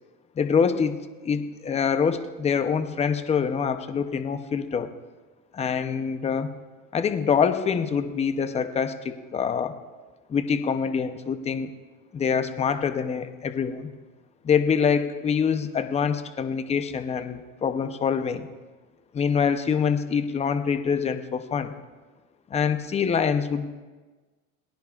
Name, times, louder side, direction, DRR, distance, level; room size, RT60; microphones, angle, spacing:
voice 1, 0.4-4.9 5.5-6.5 6.9-9.8 10.3-11.7 12.1-13.9 14.4-18.5 19.1-21.7 22.5-23.7, left 6 dB, 15° left, 9 dB, 0.7 m, -25 dB
28.0 x 19.5 x 2.4 m, 1.3 s
supercardioid pair, 140°, 44 cm